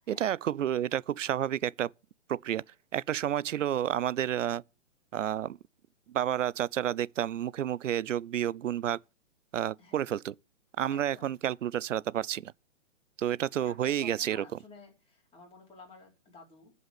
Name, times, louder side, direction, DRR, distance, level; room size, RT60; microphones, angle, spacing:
voice 1, 0.1-1.9 2.3-2.6 2.9-4.6 5.1-5.6 6.1-9.0 9.5-10.3 10.8-12.5 13.2-14.4, right 10 dB, 80° right, 0.5 m, -30 dB
voice 2, 9.8-10.1 10.9-11.3 13.5-16.7, left 3 dB, 15° left, 4.9 m, -53 dB
13.0 x 5.5 x 8.3 m
hypercardioid pair, 125°, 38 cm